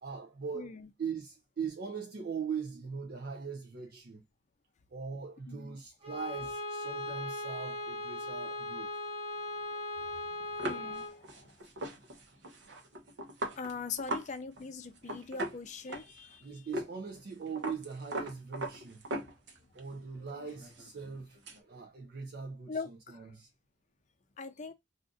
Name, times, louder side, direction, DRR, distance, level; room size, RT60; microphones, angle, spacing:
voice 1, 0.0-4.2 4.9-8.9 16.4-19.1 19.7-23.5, right 6 dB, 55° right, 0.4 m, -41 dB
voice 2, 0.5-0.9 5.5-5.8 10.0-11.5 13.6-16.5 22.7-23.2 24.4-24.7, left 5 dB, 40° left, 0.5 m, -42 dB
Bowed string instrument, 6.0-11.2, left 2 dB, 35° right, 0.9 m, -38 dB
sound 1, 10.6-14.3 14.6-14.7 15.0-16.3 16.7-16.9 17.2-19.8 20.2-21.6, right 1 dB, 75° right, 0.8 m, -39 dB
2.5 x 2.5 x 3.7 m
head